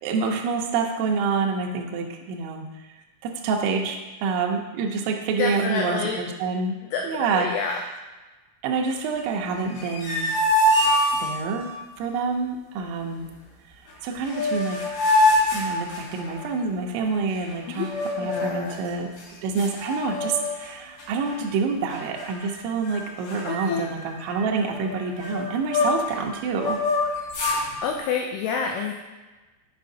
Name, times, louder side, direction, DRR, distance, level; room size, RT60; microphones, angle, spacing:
voice 1, 0.0-2.9 3.2-6.8 7.0-7.5 8.6-10.3 11.2-11.7 12.0-13.3 14.0-14.9 15.5-19.1 19.4-26.8, right 4 dB, 85° right, 1 dB, 2.7 m, -27 dB
voice 2, 5.4-6.2 6.9-7.8 17.3-17.9 18.2-18.8 23.4-23.9 27.5-28.9, left 6 dB, 90° left, 2 dB, 2.7 m, -29 dB
sound 1, 9.7-11.7 13.9-14.0 14.3-16.5 17.8-18.6 19.2-19.3 19.6-20.7 21.0-21.3 21.9-22.5 22.8-23.0 23.3-26.2 26.5-27.6, left 1 dB, 55° left, 3.5 m, -24 dB
7.4 x 5.6 x 2.6 m, 1.2 s
omnidirectional pair, 6.0 m